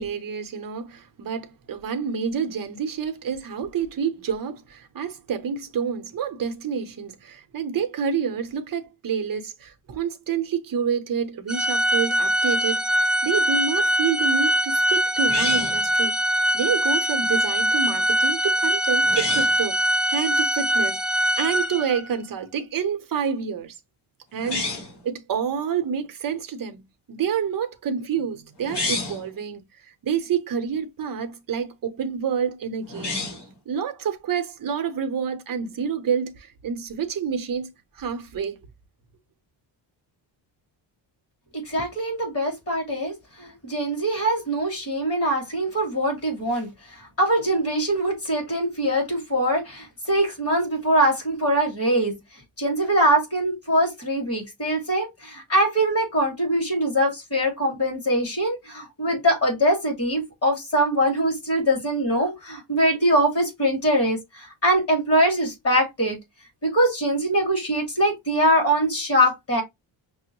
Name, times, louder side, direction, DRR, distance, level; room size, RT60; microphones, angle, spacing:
voice 1, 0.0-16.1 16.5-19.8 20.1-23.8 24.3-24.8 25.0-26.8 27.1-33.2 33.7-38.6, right 7 dB, 45° right, 0.7 m, -28 dB
Organ, 11.5-22.1, equal, ahead, 0.4 m, -22 dB
sound 1, 15.3-15.9 19.0-19.6 24.4-25.0 28.6-29.3 32.9-33.5, left 3 dB, 60° left, 1.6 m, -29 dB
voice 2, 41.5-52.1 52.6-66.2 66.6-69.6, right 1 dB, 30° left, 1.8 m, -23 dB
5.9 x 2.0 x 2.9 m
wide cardioid pair, 175°, 46 cm